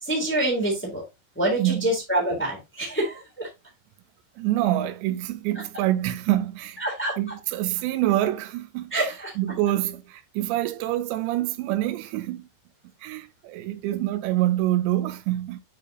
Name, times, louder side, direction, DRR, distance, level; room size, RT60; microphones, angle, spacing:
voice 1, 0.0-1.0 1.4-3.5 6.8-7.2 8.9-9.3, right 1 dB, 5° left, 2.4 m, -26 dB
voice 2, 1.6-1.9 4.4-6.8 7.2-12.4 13.0-15.6, right 14 dB, 85° right, 2.8 m, -26 dB
9.5 x 4.9 x 2.9 m
omnidirectional pair, 5.0 m